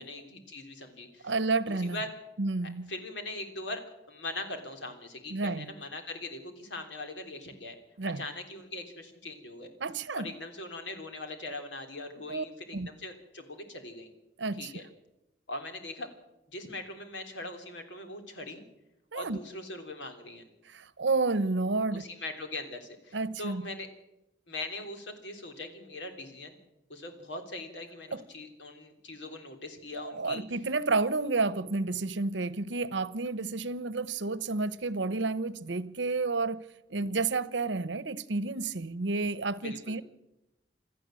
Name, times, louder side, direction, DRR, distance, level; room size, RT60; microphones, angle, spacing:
voice 1, 0.0-1.3 1.7-2.1 2.6-7.8 8.0-9.7 10.1-14.1 14.5-14.9 15.5-16.1 16.5-18.6 19.1-20.4 21.9-23.9 24.5-26.6 26.9-30.5 39.6-40.0, left 2 dB, 85° left, 3.4 m, -41 dB
voice 2, 1.2-2.0 2.4-2.9 5.3-5.7 8.0-8.2 9.8-10.3 12.3-12.4 12.7-12.9 14.4-14.7 19.1-19.4 20.7-22.0 23.1-23.7 28.1-28.2 30.0-36.6 36.9-40.0, right 3 dB, 85° right, 0.9 m, -30 dB
27.0 x 13.5 x 7.7 m
head